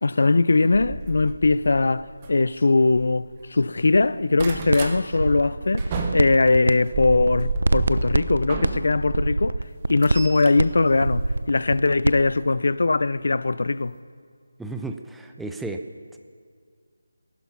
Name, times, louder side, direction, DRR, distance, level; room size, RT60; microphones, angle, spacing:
voice 1, 0.0-5.9 6.1-9.6 9.9-13.9, left 3 dB, 60° left, 0.5 m, -21 dB
sound 1, 0.7-3.5 3.8-5.0 5.4-9.2 9.6-11.8 12.9-13.1 13.5-13.6 13.8-13.9, right 4 dB, 20° right, 0.9 m, -32 dB
sound 2, 4.7-4.8 5.1-6.7 7.0-12.2, right 2 dB, 80° right, 0.7 m, -25 dB
voice 2, 14.6-15.8, right 2 dB, ahead, 0.4 m, -33 dB
19.0 x 11.5 x 5.8 m
figure-of-eight pair, 175°, 0 cm